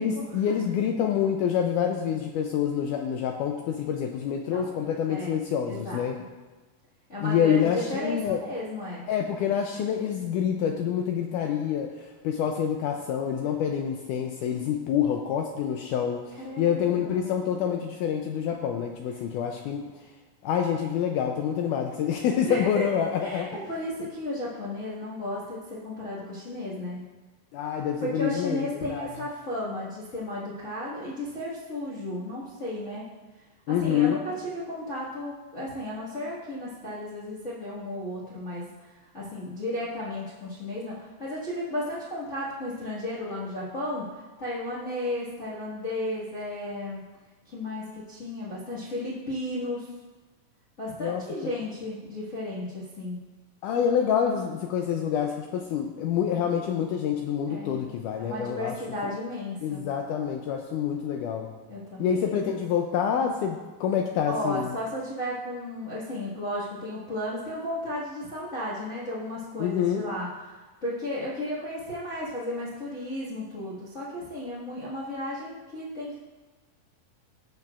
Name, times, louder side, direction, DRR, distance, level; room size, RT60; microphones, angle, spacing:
voice 1, 0.0-6.2 7.2-8.4 9.1-19.8 20.4-23.6 27.5-28.6 28.9-29.1 33.7-34.2 51.0-51.5 53.6-58.8 59.6-61.5 62.0-64.7 69.6-70.1, left 8 dB, 85° left, 3 dB, 1.8 m, -27 dB
voice 2, 5.7-6.0 7.1-9.0 16.4-17.3 22.5-27.0 28.0-33.0 33.7-47.0 47.4-49.9 50.8-53.2 57.5-57.9 58.2-59.9 61.7-62.3 64.2-76.2, left 1 dB, 45° left, -9 dB, 0.9 m, -34 dB
18.0 x 6.6 x 2.4 m, 1.3 s
omnidirectional pair, 4.2 m